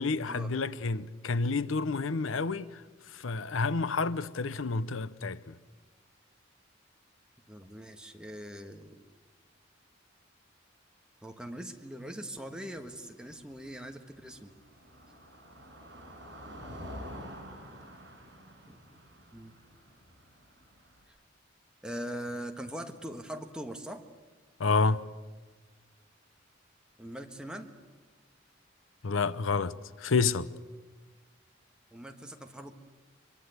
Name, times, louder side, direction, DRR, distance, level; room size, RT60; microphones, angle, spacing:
voice 1, 0.0-2.8 3.1-5.5 24.6-25.0 29.0-29.7 30.0-30.5, left 4 dB, 85° left, 0.7 m, -29 dB
voice 2, 7.5-9.0 11.2-14.5 18.6-19.0 19.3-19.5 21.1-21.2 21.8-24.0 27.0-27.7 31.9-32.7, right 1 dB, 5° right, 1.5 m, -42 dB
Car passing by, 12.9-21.0, equal, 60° right, 7.6 m, -48 dB
24.0 x 23.5 x 8.1 m
head